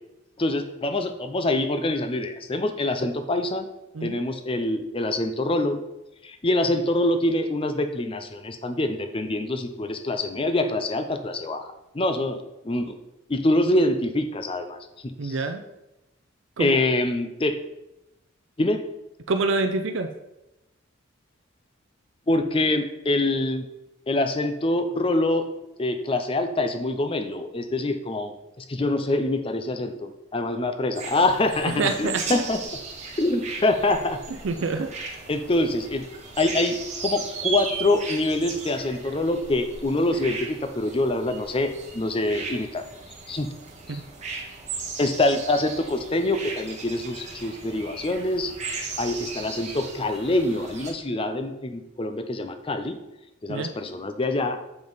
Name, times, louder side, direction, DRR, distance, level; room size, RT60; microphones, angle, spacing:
voice 1, 0.4-3.6 4.0-5.8 6.2-11.7 11.9-12.9 13.3-15.4 16.6-17.6 18.6-18.8 22.3-23.6 24.1-25.5 25.8-28.3 28.6-32.6 33.2-34.2 35.3-36.0 36.4-42.8 43.3-43.5 43.9-44.0 45.0-48.6 49.0-53.0 53.4-54.6, left 2 dB, 25° left, 7 dB, 0.5 m, -25 dB
voice 2, 15.2-15.6 16.6-16.8 19.3-20.1 31.6-32.4 34.4-34.9 43.9-44.0 53.5-53.7, right 3 dB, 70° right, 7 dB, 0.5 m, -26 dB
sound 1, 30.9-50.9, right 4 dB, 35° right, 1.0 m, -37 dB
7.1 x 5.2 x 4.0 m, 0.94 s
head